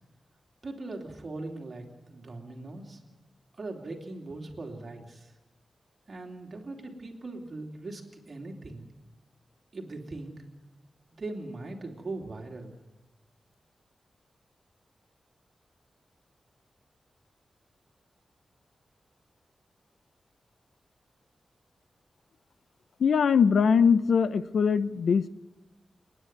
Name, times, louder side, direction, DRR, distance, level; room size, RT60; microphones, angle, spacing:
voice 1, 0.6-3.0 3.6-5.3 6.1-8.9 9.7-10.4 11.1-12.8, right 2 dB, 40° right, 1 dB, 2.8 m, -40 dB
voice 2, 23.0-25.3, left 6 dB, 80° left, 14 dB, 0.6 m, -22 dB
28.5 x 10.0 x 9.4 m, 1.1 s
wide cardioid pair, 170°, 0 cm